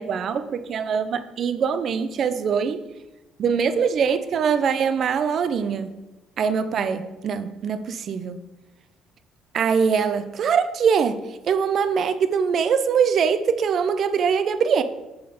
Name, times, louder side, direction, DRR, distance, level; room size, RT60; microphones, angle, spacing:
voice 1, 0.0-2.8 3.4-5.9 6.4-8.4 9.5-14.8, right 6 dB, 40° right, 11 dB, 0.4 m, -23 dB
6.9 x 3.9 x 5.0 m, 1.0 s
cardioid pair, 160°, 0 cm